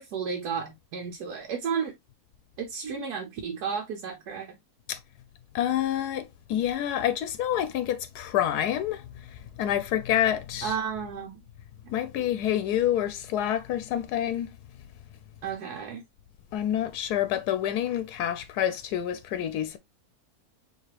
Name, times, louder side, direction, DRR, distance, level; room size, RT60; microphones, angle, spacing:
voice 1, 0.0-1.9 2.6-4.5 10.6-11.3 11.8-11.9 15.4-16.0, right 6 dB, 85° right, 1.4 m, -32 dB
voice 2, 5.5-9.0 9.6-10.7 11.9-14.5 16.5-19.8, left 11 dB, 90° left, 1.1 m, -27 dB
4.8 x 3.2 x 2.8 m
omnidirectional pair, 1.6 m